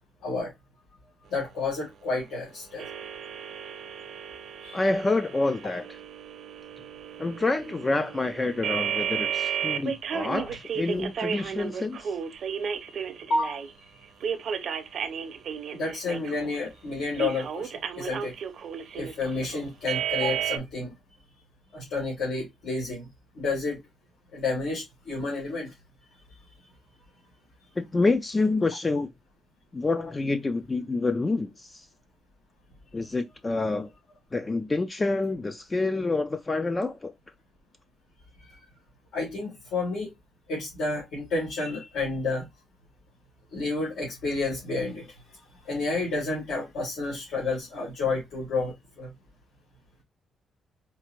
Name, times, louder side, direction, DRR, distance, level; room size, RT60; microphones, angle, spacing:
voice 1, 0.2-0.5 1.3-2.9 4.6-4.8 13.3-13.6 15.7-18.3 18.9-20.9 21.7-23.1 23.3-23.8 24.3-25.7 38.5-38.6 39.1-40.1 40.5-42.4 43.5-45.2 45.6-49.1, left 3 dB, 80° left, 2.3 m, -30 dB
sound 1, 2.8-13.7 14.2-16.6 17.1-20.6, right 8 dB, 55° right, 0.6 m, -33 dB
voice 2, 4.7-5.9 7.2-12.2 27.8-29.1 29.7-31.9 32.9-33.9 34.3-37.1, left 3 dB, 20° left, 0.3 m, -27 dB
4.4 x 2.4 x 2.8 m
cardioid pair, 150°, 0 cm